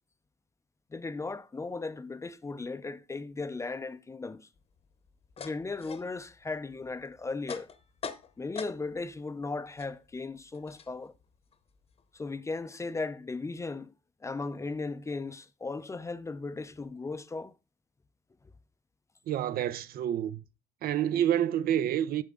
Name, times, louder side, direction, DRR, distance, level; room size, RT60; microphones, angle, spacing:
voice 1, 0.9-4.5 5.4-7.7 8.4-11.1 12.1-13.9 14.2-17.6, left 3 dB, 15° left, 0.5 m, -37 dB
sound 1, 4.6-9.1 9.4-12.3, left 6 dB, 35° left, 0.9 m, -45 dB
voice 2, 19.3-20.4 20.8-22.2, right 10 dB, 65° right, 0.7 m, -28 dB
8.7 x 7.3 x 3.8 m
cardioid pair, 130°, 17 cm